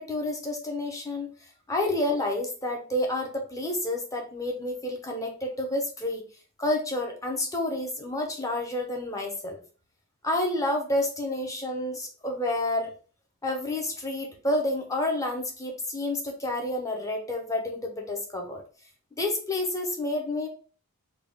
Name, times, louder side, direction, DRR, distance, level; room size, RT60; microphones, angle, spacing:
voice 1, 0.0-1.3 1.7-6.3 6.6-9.6 10.2-12.9 13.4-18.6 19.2-20.5, left 1 dB, 15° left, 1 dB, 0.6 m, -29 dB
3.4 x 2.3 x 3.4 m, 0.39 s
head